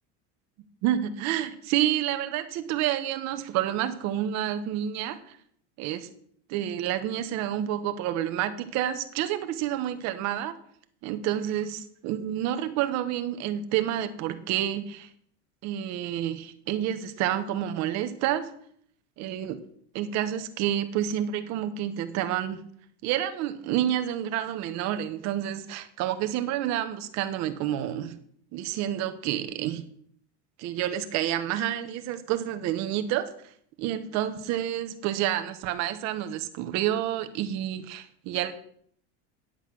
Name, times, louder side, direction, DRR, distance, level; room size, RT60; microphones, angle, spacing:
voice 1, 0.8-5.4 5.8-6.1 6.5-10.5 11.0-15.1 15.6-18.5 19.2-19.6 19.9-22.6 23.0-28.2 28.5-29.8 30.6-33.2 33.8-38.5, right 11 dB, 50° right, 9 dB, 1.2 m, -29 dB
9.9 x 8.2 x 6.1 m, 0.63 s
cardioid pair, 155°, 34 cm